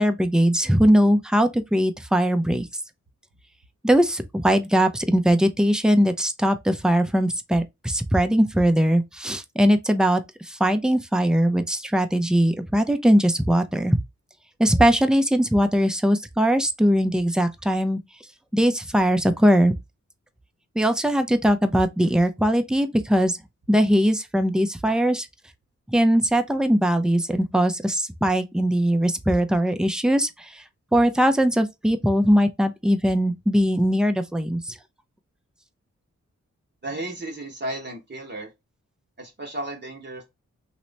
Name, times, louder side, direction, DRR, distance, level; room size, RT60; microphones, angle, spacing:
voice 1, 0.0-2.7 3.8-14.0 14.6-18.0 18.5-19.7 20.8-23.4 23.7-25.3 25.9-30.6 30.9-34.8, equal, ahead, 0.5 m, -20 dB
voice 2, 36.8-38.5 39.2-40.3, right 1 dB, 35° right, 1.0 m, -34 dB
3.0 x 2.1 x 3.9 m
cardioid pair, 65°, 30 cm